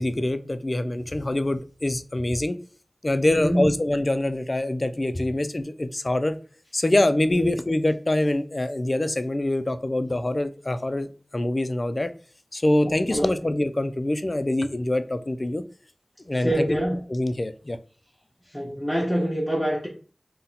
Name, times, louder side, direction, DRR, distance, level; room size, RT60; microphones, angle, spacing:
voice 1, 0.0-2.6 3.0-6.4 6.7-11.1 11.3-12.1 12.5-15.6 16.3-16.8 17.1-17.8, left 1 dB, 45° left, 11 dB, 0.3 m, -24 dB
voice 2, 3.3-3.7 7.3-7.5 13.1-13.3 16.4-17.0 18.5-19.9, equal, 5° left, -5 dB, 0.8 m, -25 dB
2.7 x 2.1 x 3.9 m, 0.39 s
wide cardioid pair, 45°, 0 cm